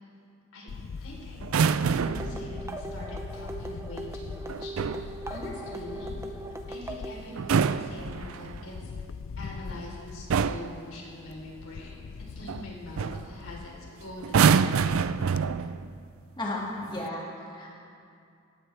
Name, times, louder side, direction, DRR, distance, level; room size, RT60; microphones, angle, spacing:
Camera, 0.7-15.4, left 5 dB, 65° left, 0.4 m, -42 dB
voice 1, 1.0-6.3 6.7-8.9 9.4-13.7 14.0-14.9, left 1 dB, 90° left, -3 dB, 3.9 m, -44 dB
sound 1, 1.4-2.4 4.5-5.1 7.3-8.6 9.7-9.9 10.3-10.8 12.5-12.7 13.0-13.3 14.2-15.9 16.8-17.1, right 6 dB, 75° right, 0.4 m, -26 dB
sound 2, 2.0-7.2, right 2 dB, 15° right, 0.6 m, -39 dB
voice 2, 16.4-17.7, left 1 dB, 20° left, -4 dB, 2.1 m, -34 dB
18.0 x 15.5 x 3.4 m, 2.4 s
head